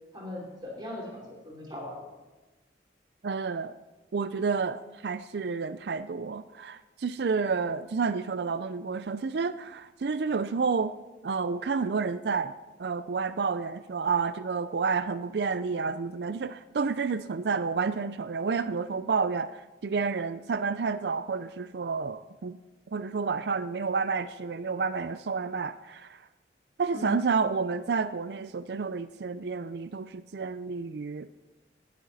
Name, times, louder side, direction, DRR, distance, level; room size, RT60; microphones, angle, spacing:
voice 1, 0.1-2.1 26.9-27.2, left 1 dB, 25° right, -1 dB, 3.1 m, -39 dB
voice 2, 3.2-3.8 4.1-10.9 11.2-12.5 12.8-22.6 22.9-26.2 26.8-31.3, right 5 dB, 70° right, 12 dB, 0.4 m, -30 dB
19.0 x 10.0 x 4.1 m, 1.2 s
head